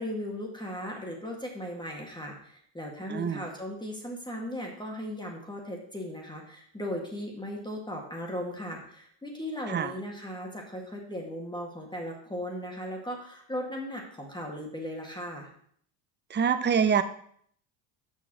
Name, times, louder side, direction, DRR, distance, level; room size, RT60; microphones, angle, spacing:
voice 1, 0.0-15.5, equal, 10° left, 0 dB, 1.9 m, -37 dB
voice 2, 3.1-3.4 9.7-9.9 16.3-17.0, right 7 dB, 20° right, 10 dB, 0.7 m, -25 dB
6.6 x 5.9 x 6.0 m, 0.62 s
supercardioid pair, 110°, 49 cm